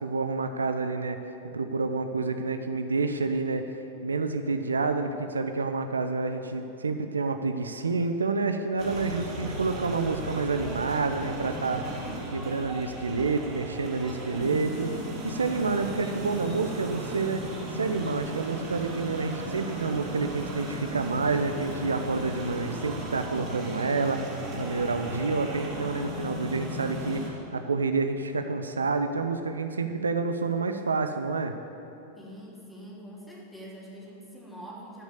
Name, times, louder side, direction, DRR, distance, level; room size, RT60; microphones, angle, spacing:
voice 1, 0.0-1.2 1.5-11.8 12.3-14.9 15.2-17.4 17.7-31.5, right 4 dB, 75° right, 7 dB, 0.6 m, -29 dB
sound 1, 8.8-27.3, right 1 dB, 35° right, 3.0 m, -36 dB
voice 2, 32.2-35.0, equal, 5° left, -4 dB, 2.9 m, -44 dB
13.5 x 6.3 x 8.2 m, 2.8 s
figure-of-eight pair, 90°, 0 cm